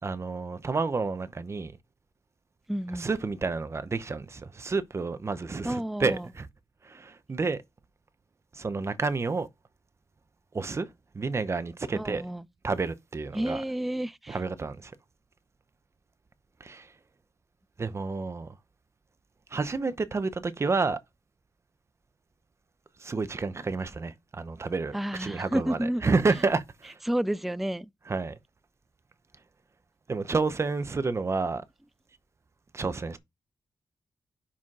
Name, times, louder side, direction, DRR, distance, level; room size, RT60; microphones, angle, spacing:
voice 1, 0.0-1.7 2.9-6.5 6.8-7.6 8.5-9.5 10.5-10.9 11.1-12.2 12.6-13.6 14.3-14.9 16.6-16.9 17.8-18.5 19.5-21.0 23.0-27.0 28.1-28.4 30.1-31.6 32.7-33.2, right 4 dB, 30° right, 0.8 m, -30 dB
voice 2, 2.7-3.1 5.6-6.3 11.9-12.4 13.3-14.4 24.9-26.0 27.1-27.9, right 1 dB, ahead, 0.3 m, -30 dB
5.6 x 5.1 x 4.7 m
wide cardioid pair, 105°, 9 cm